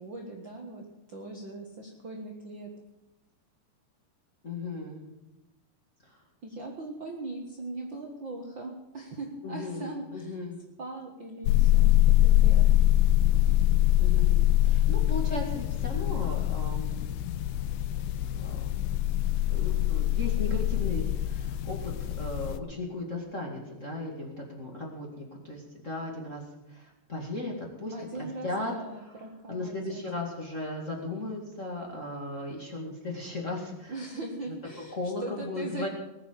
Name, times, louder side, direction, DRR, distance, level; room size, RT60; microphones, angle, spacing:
voice 1, 0.0-2.7 6.4-10.4 10.8-12.8 27.9-30.0 33.9-35.9, right 2 dB, 90° right, 0 dB, 1.0 m, -40 dB
voice 2, 4.4-5.1 6.1-6.2 9.4-10.6 14.0-17.0 18.3-18.6 19.5-26.4 26.7-27.9 28.4-28.7 29.5-34.0 34.9-35.9, left 2 dB, 30° left, -1 dB, 1.5 m, -36 dB
sound 1, 11.4-22.6, left 13 dB, 80° left, 2.6 m, -24 dB
19.5 x 8.1 x 7.5 m, 0.99 s
omnidirectional pair, 4.8 m